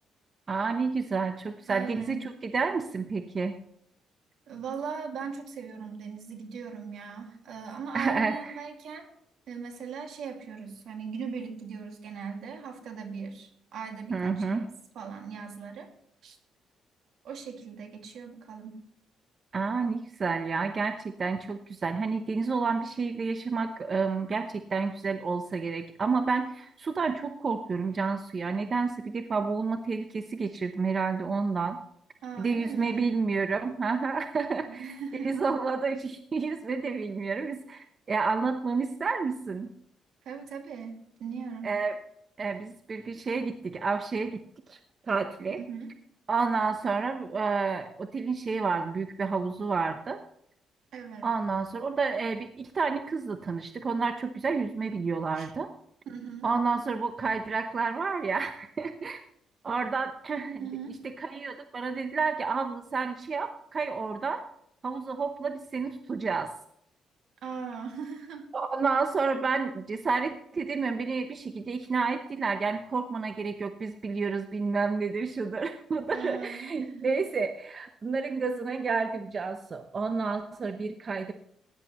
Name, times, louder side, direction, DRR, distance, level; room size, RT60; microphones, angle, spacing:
voice 1, 0.5-3.6 7.9-8.6 14.1-14.7 19.5-31.8 32.4-34.9 35.2-39.7 41.6-42.0 42.4-44.4 44.7-44.8 45.1-45.6 46.3-50.2 51.2-55.7 56.4-59.2 59.6-60.6 61.0-64.5 64.8-66.5 68.5-81.3, right 4 dB, 40° right, 7 dB, 0.8 m, -30 dB
voice 2, 1.7-2.2 4.5-9.1 9.5-15.9 16.2-16.4 17.2-18.8 32.2-33.0 34.7-35.4 40.2-41.7 45.6-45.9 50.9-51.3 55.4-55.5 56.1-56.5 60.6-61.1 67.4-68.5 76.1-77.1, right 6 dB, 70° right, 4 dB, 2.2 m, -39 dB
16.5 x 10.5 x 3.1 m, 0.71 s
cardioid pair, 90°, 0 cm